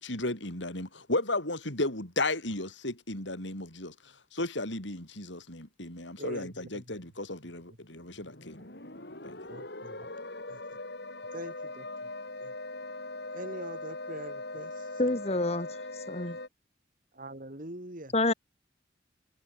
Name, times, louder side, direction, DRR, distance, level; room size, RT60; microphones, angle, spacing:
voice 1, 0.0-3.9 4.3-8.6 9.2-9.4, left 2 dB, 80° left, 7.7 m, -34 dB
voice 2, 6.2-7.0 9.5-10.1 10.5-10.6 11.3-11.9 12.4-12.5 13.3-14.8 17.1-18.1, right 1 dB, 45° right, 3.8 m, -43 dB
sound 1, 8.0-16.5, left 2 dB, 60° left, 4.8 m, -41 dB
voice 3, 15.0-15.8 16.1-16.4 18.1-18.3, left 2 dB, 35° left, 2.2 m, -28 dB
head